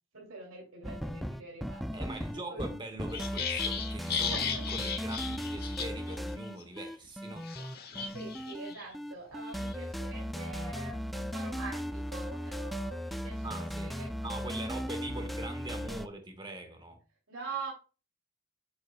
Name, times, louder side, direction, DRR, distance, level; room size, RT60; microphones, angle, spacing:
voice 1, 0.1-2.0 2.3-2.6 4.3-4.6 8.1-14.1 14.9-15.0 17.3-17.7, right 4 dB, 90° right, 2.6 m, -44 dB
sound 1, 0.8-16.1, equal, ahead, 0.3 m, -37 dB
voice 2, 1.9-7.5 13.4-14.0 14.2-17.0, right 2 dB, 25° right, 1.5 m, -42 dB
sound 2, 3.1-6.2 6.4-6.6 7.4-8.8 9.3-9.7, left 6 dB, 50° left, 1.2 m, -36 dB
7.8 x 7.1 x 2.2 m
head